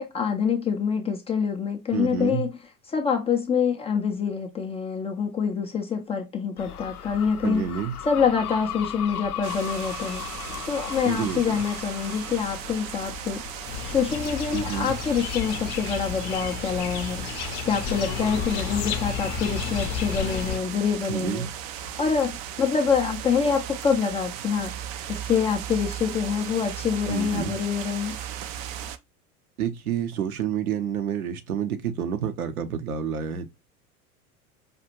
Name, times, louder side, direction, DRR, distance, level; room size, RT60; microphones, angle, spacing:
voice 1, 0.0-2.5 2.9-7.6 8.0-13.4 13.9-17.3 17.6-21.5 22.0-24.7 25.1-28.1, left 6 dB, 15° left, 0.5 m, -26 dB
voice 2, 1.9-2.4 7.4-7.9 11.1-11.4 14.5-14.9 21.1-21.5 27.1-27.6 29.6-33.5, right 8 dB, 70° right, 0.8 m, -29 dB
sound 1, 6.6-15.8, left 9 dB, 80° left, 0.6 m, -38 dB
sound 2, 9.4-29.0, right 10 dB, 35° right, 0.4 m, -37 dB
sound 3, 13.7-20.6, left 8 dB, 45° left, 0.7 m, -32 dB
5.1 x 2.4 x 2.9 m
figure-of-eight pair, 80°, 45 cm